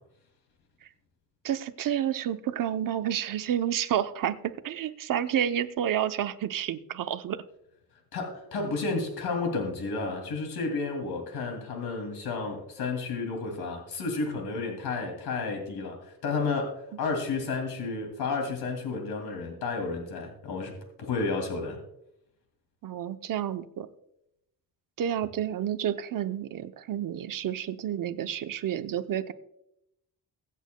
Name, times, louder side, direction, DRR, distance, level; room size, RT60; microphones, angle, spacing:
voice 1, 1.4-7.4 22.8-23.9 25.0-29.3, right 10 dB, 60° right, 10 dB, 0.7 m, -30 dB
voice 2, 8.1-21.8, left 4 dB, 75° left, 2 dB, 2.5 m, -32 dB
23.0 x 8.3 x 2.2 m, 0.80 s
wide cardioid pair, 165°, 38 cm